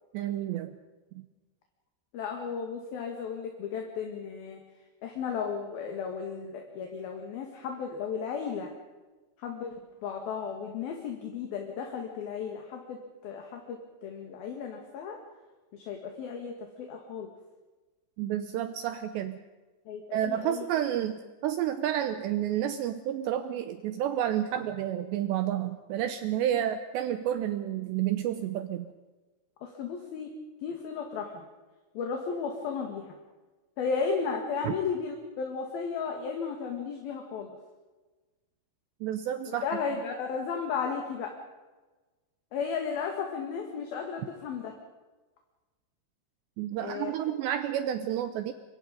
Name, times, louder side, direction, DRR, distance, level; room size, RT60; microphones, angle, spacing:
voice 1, 0.1-0.7 1.2-1.3 18.2-19.4 20.1-21.2 21.4-28.9 34.6-34.7 39.0-39.6 46.6-48.5, right 11 dB, 80° right, 10 dB, 2.6 m, -30 dB
voice 2, 2.1-4.6 5.0-8.7 9.4-9.8 10.0-15.2 15.7-17.3 19.9-20.7 29.6-30.3 30.6-31.4 31.9-33.2 33.8-37.6 39.5-41.3 42.5-44.7 46.8-47.1, left 6 dB, 55° left, 3 dB, 3.2 m, -34 dB
26.0 x 24.0 x 5.3 m, 1.2 s
omnidirectional pair, 5.9 m